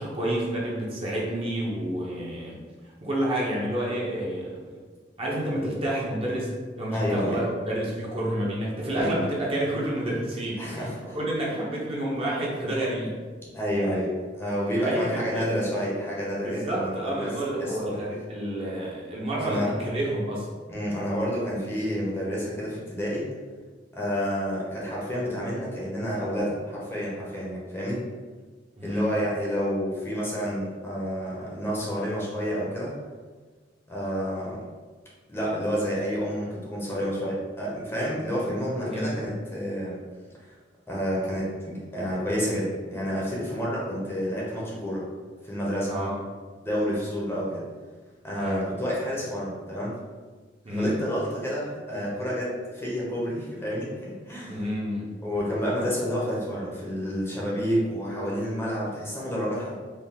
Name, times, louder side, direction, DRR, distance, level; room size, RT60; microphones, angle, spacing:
voice 1, 0.0-2.6 3.0-4.8 5.2-6.5 6.8-10.8 11.1-13.1 14.7-15.5 16.4-20.5 28.8-29.1 38.9-39.1 45.9-46.1 48.3-48.6 50.6-51.0 54.5-55.1, right 1 dB, 30° right, -5 dB, 0.8 m, -29 dB
voice 2, 6.9-7.4 8.9-9.2 10.6-11.2 13.5-17.3 17.6-18.0 19.4-19.7 20.7-23.3 23.9-28.0 28.8-32.9 33.9-34.6 35.3-40.0 40.9-45.0 45.4-45.9 46.6-47.6 48.2-50.0 50.7-54.6 55.2-59.7, equal, 15° left, -5 dB, 0.7 m, -29 dB
4.4 x 2.1 x 3.6 m, 1.4 s
head